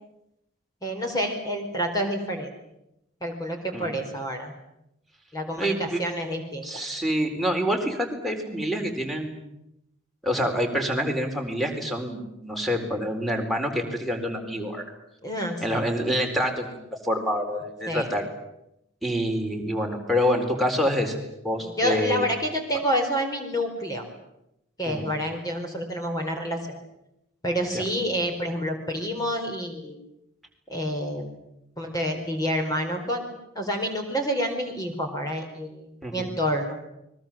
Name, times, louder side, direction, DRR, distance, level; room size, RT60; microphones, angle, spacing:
voice 1, 0.8-2.5 3.2-4.5 5.3-6.7 15.2-15.9 17.9-18.1 21.6-24.0 24.8-26.6 27.4-30.0 30.7-31.3 31.8-35.9 36.1-36.8, equal, 20° left, 4 dB, 4.4 m, -28 dB
voice 2, 5.6-6.0 6.6-9.3 10.2-14.8 15.6-18.2 19.0-22.3 24.8-25.0 27.7-27.8 36.0-36.3, equal, ahead, 4 dB, 4.2 m, -27 dB
29.5 x 22.0 x 7.5 m, 0.84 s
head